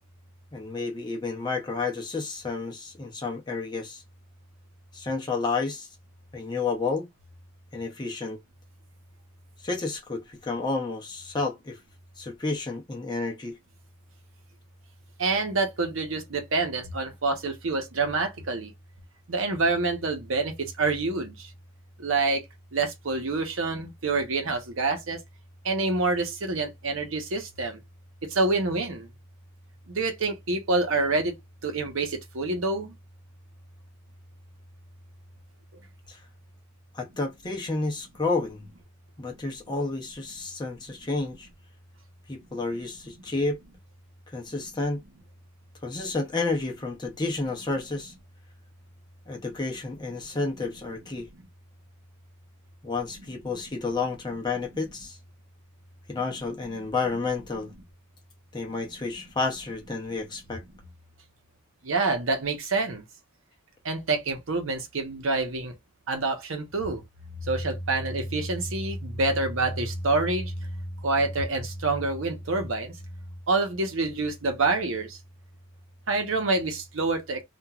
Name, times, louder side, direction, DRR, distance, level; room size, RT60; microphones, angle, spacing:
voice 1, 0.5-4.0 4.9-5.9 6.3-7.1 7.7-8.4 9.6-11.8 12.2-13.5 36.1-36.2 36.9-38.7 39.2-41.5 42.3-43.6 44.3-45.0 45.8-48.1 49.3-51.3 52.8-55.2 56.1-57.7 58.5-60.6, left 3 dB, 20° left, 0.6 m, -30 dB
voice 2, 15.2-18.7 19.3-21.5 22.0-22.4 22.7-25.2 25.6-27.8 28.3-29.1 29.9-31.3 31.6-33.0 61.8-63.0 63.8-65.7 66.1-67.0 67.5-70.5 71.0-72.9 73.5-75.2 76.1-77.4, right 3 dB, 70° right, 0.8 m, -27 dB
3.0 x 2.4 x 2.3 m
head